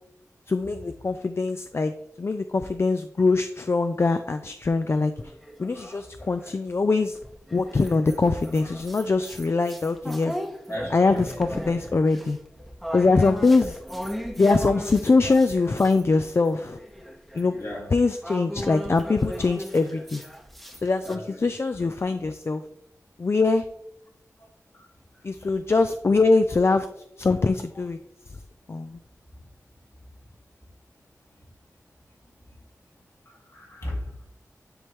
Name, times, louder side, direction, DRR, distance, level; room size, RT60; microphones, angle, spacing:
voice 1, 0.5-1.9 2.2-5.1 5.6-7.2 7.5-10.4 10.9-12.4 12.9-13.8 14.4-16.8 17.3-17.5 17.9-20.2 20.8-22.6 23.2-23.7 25.2-26.9 27.2-28.0 28.7-29.0, left 3 dB, 45° left, 0.4 m, -23 dB
sound 1, 5.2-6.6 7.1-16.0 16.4-21.2, equal, 5° left, 0.8 m, -37 dB
voice 2, 10.7-11.3 17.6-17.9 21.1-21.4 24.7-24.9 33.3-34.2, left 1 dB, 65° left, 2.2 m, -35 dB
10.0 x 3.5 x 3.0 m
wide cardioid pair, 60°, 6 cm